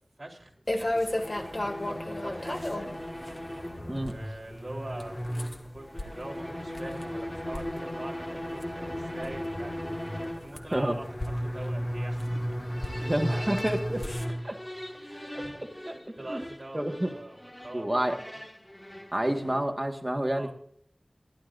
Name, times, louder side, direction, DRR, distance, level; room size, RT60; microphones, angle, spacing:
voice 1, 0.2-3.5 3.9-10.0 10.3-12.6 12.9-13.5 15.0-18.3 20.3-20.5, right 1 dB, 40° right, 0 dB, 3.9 m, -44 dB
sound 1, 0.7-14.3, left 1 dB, 40° left, 2.1 m, -37 dB
sound 2, 0.7-19.8, equal, 15° left, 1.8 m, -36 dB
voice 2, 13.0-14.1 14.4-14.6 15.3-15.4 15.8-15.9 16.3-16.4 16.7-17.1 17.7-18.2 19.1-20.5, right 1 dB, 20° right, 4 dB, 1.8 m, -29 dB
27.5 x 13.0 x 2.6 m, 0.66 s
wide cardioid pair, 60°, 0 cm